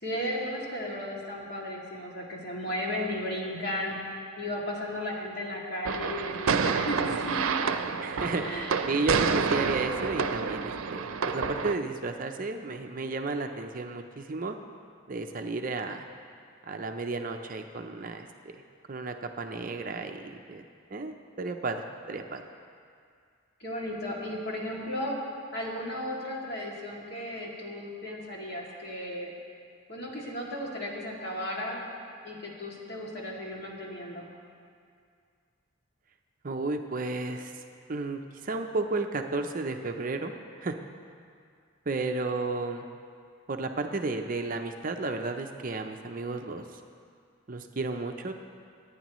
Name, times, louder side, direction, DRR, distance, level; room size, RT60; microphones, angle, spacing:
voice 1, 0.0-4.0 4.4-7.7 8.4-8.7 23.6-25.2 25.5-29.3 29.9-31.8 32.2-34.2, left 1 dB, 50° left, -4 dB, 2.4 m, -35 dB
sound 1, 5.8-11.7, right 5 dB, 90° right, 0.6 m, -28 dB
voice 2, 8.0-14.6 15.1-16.1 16.7-18.3 18.9-20.6 20.9-21.8 22.1-22.4 36.4-37.6 37.9-40.3 40.6-40.8 41.9-42.9 43.5-46.6 47.5-48.3, right 3 dB, 40° right, 5 dB, 0.6 m, -33 dB
25.5 x 9.5 x 3.1 m, 2.3 s
head